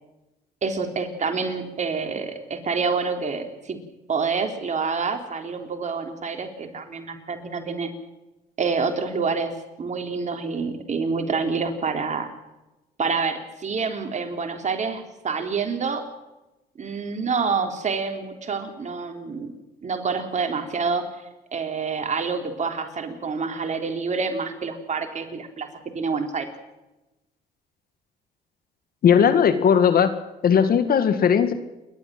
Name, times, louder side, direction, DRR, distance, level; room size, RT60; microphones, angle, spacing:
voice 1, 0.6-3.8 4.1-7.9 8.6-9.5 9.8-12.3 13.0-16.0 16.8-19.5 19.8-21.0 21.5-25.7 25.9-26.5, right 5 dB, 45° right, 5 dB, 3.6 m, -27 dB
voice 2, 29.0-30.1 30.4-31.5, left 7 dB, 60° left, 11 dB, 1.9 m, -17 dB
29.0 x 12.5 x 7.7 m, 1.0 s
supercardioid pair, 75°, 17 cm